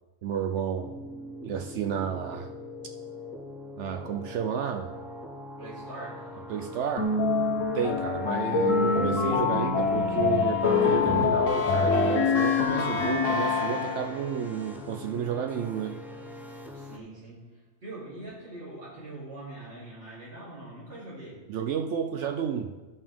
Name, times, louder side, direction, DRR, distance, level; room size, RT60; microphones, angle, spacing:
voice 1, 0.2-0.9 1.4-2.5 3.8-4.9 6.5-7.1 7.6-16.0 21.5-22.7, right 8 dB, 70° right, 5 dB, 0.8 m, -31 dB
sound 1, 0.8-17.0, left 1 dB, 5° right, 0.3 m, -43 dB
voice 2, 5.6-6.3 7.8-8.0 16.7-17.5 17.8-21.4, right 2 dB, 45° right, -9 dB, 3.5 m, -42 dB
sound 2, 7.0-14.3, left 5 dB, 80° left, 1.3 m, -25 dB
14.5 x 5.4 x 3.5 m, 1.2 s
omnidirectional pair, 1.3 m